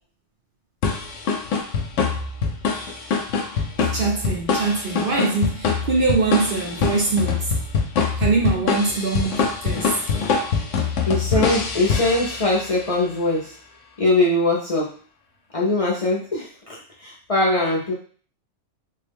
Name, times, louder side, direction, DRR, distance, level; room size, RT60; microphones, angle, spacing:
sound 1, 0.8-12.8, left 5 dB, 85° left, 1.0 m, -24 dB
voice 1, 3.8-7.5 8.2-10.0 11.3-11.6, right 3 dB, 55° right, -1 dB, 0.7 m, -23 dB
voice 2, 11.1-13.6 14.0-15.0 15.5-17.9, left 2 dB, 35° left, -5 dB, 0.6 m, -22 dB
3.6 x 2.2 x 3.4 m, 0.43 s
omnidirectional pair, 1.2 m